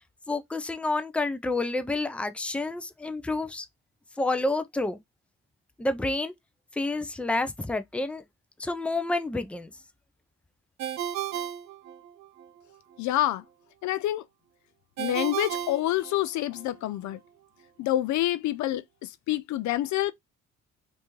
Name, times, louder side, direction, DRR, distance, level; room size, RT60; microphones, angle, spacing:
voice 1, 0.3-3.7 4.2-5.0 5.8-6.3 6.8-8.2 8.6-9.7, left 2 dB, 5° left, 0.5 m, -29 dB
Ringtone, 10.8-12.5 15.0-16.6, right 10 dB, 60° right, 0.7 m, -34 dB
voice 2, 13.0-13.4 13.8-14.2 15.0-17.2 17.8-20.1, left 14 dB, 65° left, 0.4 m, -27 dB
3.2 x 2.7 x 3.0 m
supercardioid pair, 75°, 31 cm